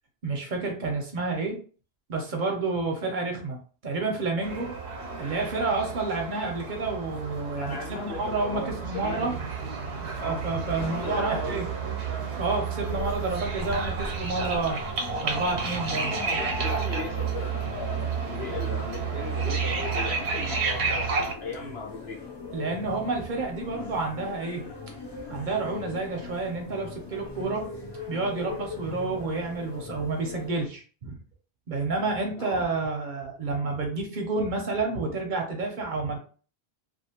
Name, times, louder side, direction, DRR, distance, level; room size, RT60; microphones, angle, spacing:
voice 1, 0.2-1.6 2.1-3.6 3.8-4.7 5.2-9.3 10.2-11.7 12.4-14.8 15.2-16.1 22.5-24.6 25.3-27.7 28.1-31.2 31.7-36.2, right 3 dB, 55° right, 2 dB, 0.6 m, -29 dB
sound 1, 4.4-21.3, right 5 dB, 90° right, 0.9 m, -31 dB
voice 2, 5.0-5.4 7.6-9.3 10.2-10.4 10.7-11.6 15.9-22.2 32.4-32.6, left 4 dB, 75° left, 0 dB, 1.0 m, -38 dB
sound 2, 12.9-30.6, left 3 dB, 35° left, 0.4 m, -41 dB
2.4 x 2.4 x 2.7 m, 0.40 s
omnidirectional pair, 1.1 m